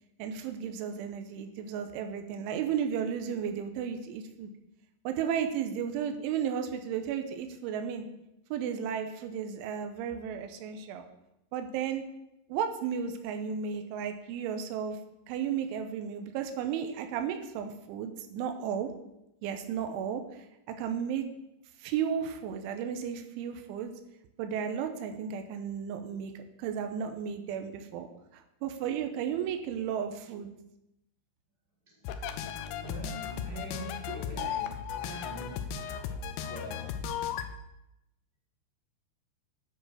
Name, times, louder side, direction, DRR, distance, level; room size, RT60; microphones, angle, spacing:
voice 1, 0.2-4.5 5.0-8.1 8.5-11.1 11.5-12.0 12.5-15.0 15.3-18.9 19.4-20.4 20.8-21.2 21.8-23.9 24.4-28.1 28.3-30.5, right 8 dB, 90° right, 6 dB, 3.2 m, -34 dB
voice 2, 31.9-37.0, right 1 dB, 15° right, -7 dB, 3.2 m, -45 dB
sound 1, 32.1-37.6, left 8 dB, 80° left, 2.6 m, -36 dB
10.0 x 6.3 x 5.0 m, 0.88 s
omnidirectional pair, 5.5 m